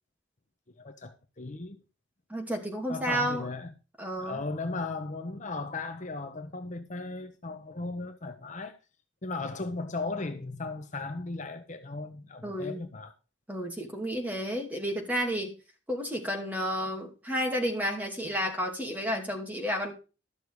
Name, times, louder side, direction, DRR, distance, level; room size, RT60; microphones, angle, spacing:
voice 1, 0.8-1.8 2.9-3.7 4.2-8.8 9.2-13.1, left 3 dB, 40° left, 1.0 m, -36 dB
voice 2, 2.3-3.5 4.0-4.4 12.4-12.8 13.5-15.5 15.9-19.9, equal, 10° right, 2.6 m, -31 dB
12.5 x 6.7 x 4.7 m
head